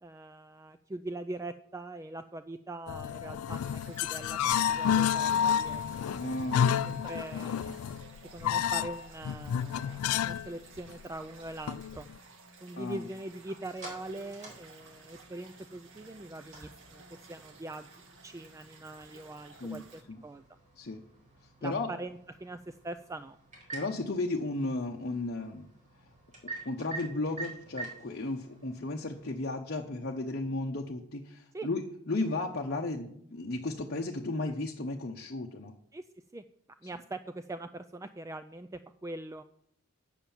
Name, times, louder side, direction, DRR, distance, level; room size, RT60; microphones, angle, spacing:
voice 1, 0.0-7.8 8.3-12.1 12.6-17.0 17.3-20.4 21.6-23.4 31.5-31.7 35.9-36.1 36.3-36.4 36.8-39.4, right 2 dB, 15° right, 10 dB, 0.3 m, -42 dB
sound 1, 2.9-10.5 10.8-10.9 11.7-12.2, left 8 dB, 90° left, 0.3 m, -30 dB
sound 2, 3.5-20.0, right 3 dB, 65° right, 1.6 m, -54 dB
voice 2, 6.1-6.8 12.8-13.0 19.6-19.8 20.1-20.2 20.8-21.0 21.6-21.9 23.7-25.7 26.6-31.8 32.1-35.7, left 2 dB, 50° left, 0 dB, 0.8 m, -34 dB
sound 3, 13.0-29.4, right 3 dB, 35° right, 4.5 m, -49 dB
9.3 x 7.4 x 7.1 m, 0.70 s
head